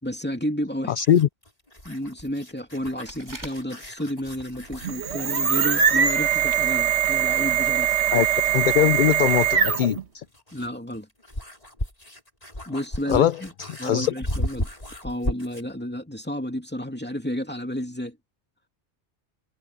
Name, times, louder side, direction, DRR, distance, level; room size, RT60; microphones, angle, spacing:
voice 1, 0.0-0.9 1.8-7.9 10.5-11.1 12.7-13.5 13.8-14.7 15.0-18.2, equal, 10° left, 2.5 m, -31 dB
voice 2, 0.9-1.3 8.1-8.3 8.5-10.2 13.1-13.4 13.8-14.1, left 11 dB, 60° left, 0.5 m, -21 dB
sound 1, 1.0-5.5 7.8-7.9 9.9-15.7, left 1 dB, 30° left, 5.3 m, -35 dB
sound 2, 3.0-4.3 4.7-5.2 5.4-5.5 6.2-6.3 6.5-6.7 7.0-7.1 7.6-7.7, right 1 dB, 40° right, 6.4 m, -43 dB
sound 3, 4.7-10.0, right 8 dB, 65° right, 1.5 m, -22 dB
omnidirectional pair, 1.2 m